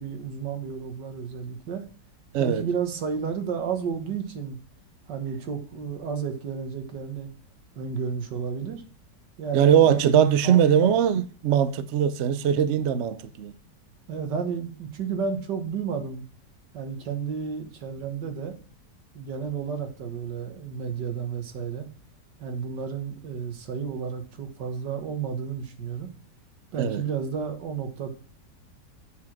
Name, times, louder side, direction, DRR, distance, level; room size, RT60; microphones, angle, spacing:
voice 1, 0.0-1.9 2.4-4.6 5.1-7.3 7.8-8.8 9.4-11.0 14.1-16.2 16.7-18.6 19.1-21.9 22.4-26.1 26.7-28.1, right 6 dB, 85° right, 1.9 m, -32 dB
voice 2, 2.3-2.6 9.5-13.5 26.8-27.0, right 9 dB, 65° right, 0.7 m, -21 dB
8.3 x 4.8 x 5.9 m
omnidirectional pair, 1.8 m